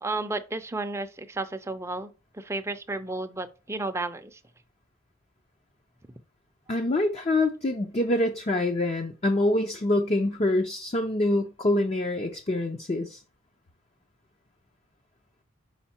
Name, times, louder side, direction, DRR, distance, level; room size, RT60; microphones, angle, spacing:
voice 1, 0.0-4.4, right 2 dB, 15° right, 0.5 m, -33 dB
voice 2, 6.7-13.2, left 1 dB, 30° left, 0.6 m, -25 dB
5.6 x 4.9 x 4.3 m
head